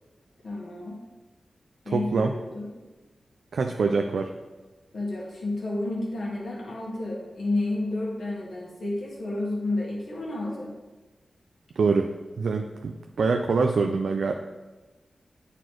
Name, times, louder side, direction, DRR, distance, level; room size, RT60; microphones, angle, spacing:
voice 1, 0.4-1.0 1.8-2.7 4.9-10.7, left 2 dB, 80° left, -4 dB, 1.4 m, -31 dB
voice 2, 1.9-2.3 3.5-4.3 11.8-12.1 12.4-14.3, right 4 dB, 80° right, 4 dB, 0.3 m, -24 dB
8.9 x 4.1 x 3.1 m, 1.2 s
cardioid pair, 50°, 0 cm